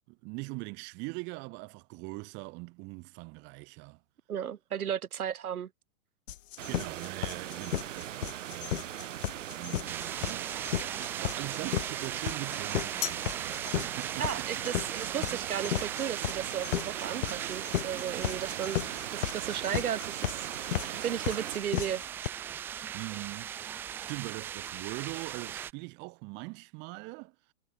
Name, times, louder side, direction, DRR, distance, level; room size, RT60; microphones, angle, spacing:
voice 1, 0.0-4.0 6.7-9.0 9.3-14.6 22.9-23.7 24.0-27.3, right 28 dB, 25° right, 2.7 m, -42 dB
voice 2, 4.3-5.7 14.2-18.8 19.1-20.5 21.0-22.0, right 9 dB, 85° right, 6.4 m, -34 dB
sound 1, 6.3-22.3, left 12 dB, 60° left, 1.2 m, -34 dB
sound 2, 6.6-21.6, right 12 dB, 60° right, 2.6 m, -41 dB
sound 3, 9.9-25.7, right 10 dB, 5° right, 0.5 m, -39 dB
hypercardioid pair, 170°, 43 cm